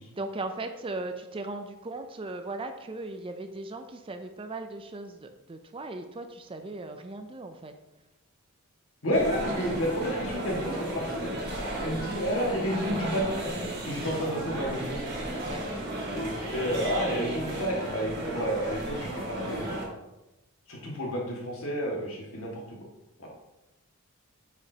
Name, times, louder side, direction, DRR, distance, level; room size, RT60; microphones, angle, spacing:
voice 1, 0.1-7.7 15.4-15.6, right 2 dB, 25° right, 7 dB, 0.4 m, -38 dB
voice 2, 9.0-11.3 11.8-13.3 13.8-15.1 16.1-19.8 20.7-22.8 23.2-23.3, equal, 65° left, -2 dB, 1.9 m, -30 dB
sound 1, 9.1-19.9, right 1 dB, 50° right, 2.0 m, -34 dB
9.5 x 5.0 x 2.8 m, 1.0 s
head